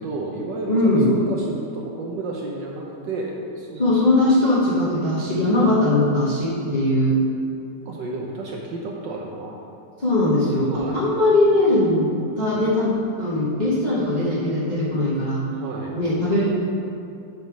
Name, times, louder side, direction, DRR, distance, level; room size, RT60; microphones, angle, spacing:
voice 1, 0.0-4.1 5.6-5.9 7.8-9.7 10.6-11.1 15.6-15.9, right 2 dB, 70° right, -1 dB, 1.1 m, -31 dB
voice 2, 0.7-1.1 3.8-7.2 10.0-12.9 13.2-15.4 15.9-16.5, left 1 dB, 40° left, -8 dB, 0.6 m, -20 dB
8.0 x 3.4 x 6.1 m, 2.6 s
omnidirectional pair, 2.4 m